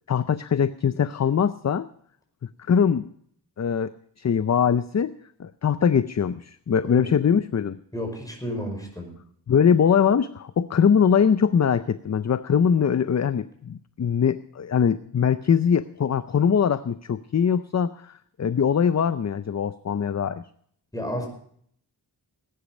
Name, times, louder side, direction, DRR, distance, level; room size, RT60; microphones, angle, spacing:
voice 1, 0.1-1.9 2.7-3.1 3.6-3.9 4.2-5.1 5.4-7.8 9.5-20.4, left 7 dB, 40° left, 13 dB, 0.5 m, -22 dB
voice 2, 7.9-9.1 20.9-21.3, equal, 10° left, 2 dB, 5.5 m, -31 dB
19.5 x 10.5 x 5.3 m, 0.63 s
wide cardioid pair, 125°, 43 cm